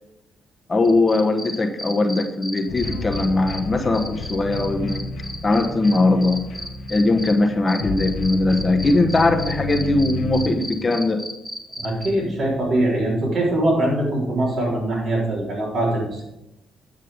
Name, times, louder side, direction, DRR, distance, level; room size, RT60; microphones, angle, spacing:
voice 1, 0.7-5.0 5.4-6.5 6.9-11.2, left 2 dB, 25° left, 4 dB, 1.1 m, -20 dB
sound 1, 0.8-3.6 3.9-7.3 7.7-12.1, left 1 dB, 10° right, 2.0 m, -33 dB
sound 2, 2.7-10.5, left 2 dB, 80° left, 1.3 m, -31 dB
voice 2, 11.8-16.2, right 1 dB, 60° right, -4 dB, 4.0 m, -22 dB
9.8 x 6.4 x 5.1 m, 0.91 s
cardioid pair, 90°, 0 cm